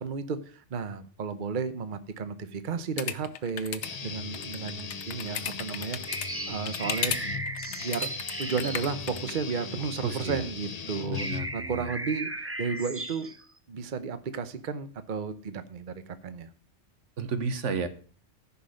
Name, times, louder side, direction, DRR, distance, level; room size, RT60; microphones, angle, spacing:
voice 1, 0.0-6.0 6.5-7.2 7.8-8.1 8.4-11.3 11.5-13.3 13.7-16.5, right 5 dB, 45° right, 11 dB, 1.0 m, -33 dB
sound 1, 3.0-3.9 4.3-6.3 6.6-7.2 7.5-9.3, left 8 dB, 70° left, 1.1 m, -34 dB
Guitar, 3.8-11.8, left 5 dB, 40° left, 0.8 m, -39 dB
sound 2, 6.1-10.0 10.5-10.6 10.9-13.4, right 2 dB, 15° right, 0.7 m, -37 dB
voice 2, 10.0-10.5 11.1-11.9 17.2-17.9, right 4 dB, 75° right, 11 dB, 1.4 m, -32 dB
14.5 x 5.7 x 6.4 m, 0.40 s
omnidirectional pair, 1.2 m